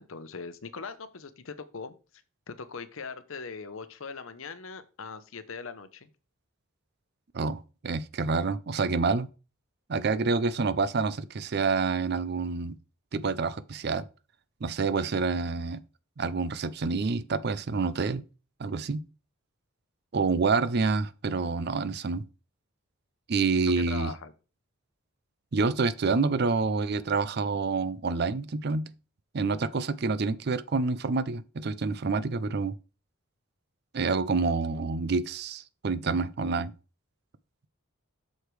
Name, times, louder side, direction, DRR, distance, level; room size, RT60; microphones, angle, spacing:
voice 1, 0.0-1.9 2.5-6.1 23.7-24.3, left 5 dB, 70° left, 0.8 m, -40 dB
voice 2, 7.3-9.3 9.9-12.8 13.1-14.1 14.6-15.8 16.2-18.2 18.6-19.0 20.1-22.2 23.3-24.1 25.5-28.9 29.3-32.7 33.9-36.7, right 4 dB, 50° right, 0.5 m, -28 dB
7.9 x 6.5 x 3.2 m
head